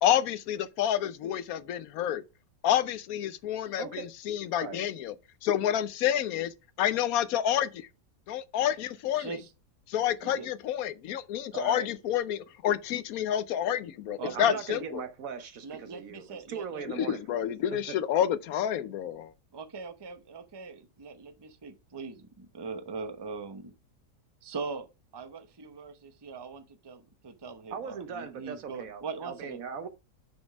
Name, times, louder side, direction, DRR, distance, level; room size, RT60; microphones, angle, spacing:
voice 1, 0.0-2.2 2.6-5.1 5.4-6.5 6.8-7.9 8.3-9.4 9.9-15.0 16.9-19.3, left 10 dB, 70° left, 1.0 m, -29 dB
voice 2, 3.8-4.1 4.6-4.8 11.5-11.9 14.1-18.0 27.7-29.9, right 6 dB, 65° right, 1.2 m, -39 dB
voice 3, 9.1-9.5 10.2-10.5 14.2-14.8 15.6-16.8 19.5-23.7 24.4-24.9 25.1-29.6, right 4 dB, 25° right, 0.6 m, -41 dB
6.2 x 5.2 x 4.8 m
omnidirectional pair, 1.7 m